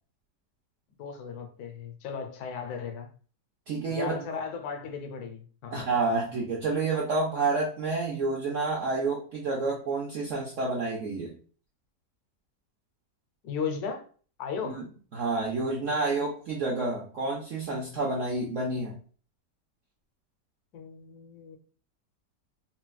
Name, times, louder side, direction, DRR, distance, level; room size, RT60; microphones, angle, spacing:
voice 1, 1.0-3.1 3.9-5.8 13.4-14.0 14.4-14.8 20.7-21.6, left 6 dB, 70° left, 1.1 m, -36 dB
voice 2, 3.7-4.1 5.7-11.3 14.6-14.8 15.1-19.0, right 3 dB, 65° right, 0.8 m, -29 dB
4.1 x 2.2 x 2.2 m
omnidirectional pair, 1.8 m